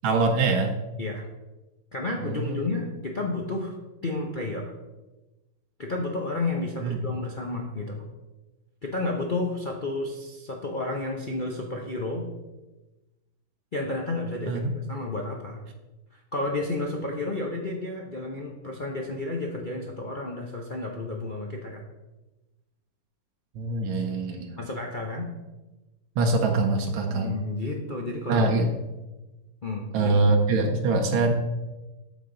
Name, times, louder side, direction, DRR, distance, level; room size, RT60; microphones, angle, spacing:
voice 1, 0.0-0.8 2.2-2.7 6.8-7.0 14.5-14.7 23.5-24.6 26.2-27.4 28.3-28.7 29.9-31.3, right 3 dB, 80° right, 3 dB, 1.6 m, -24 dB
voice 2, 1.9-3.7 4.0-4.7 5.8-8.0 8.8-12.2 13.7-14.6 14.9-15.6 16.1-21.8 24.6-25.3 27.1-28.5 29.6-30.1, left 2 dB, 70° left, -1 dB, 0.4 m, -31 dB
8.5 x 7.1 x 3.8 m, 1.1 s
omnidirectional pair, 2.2 m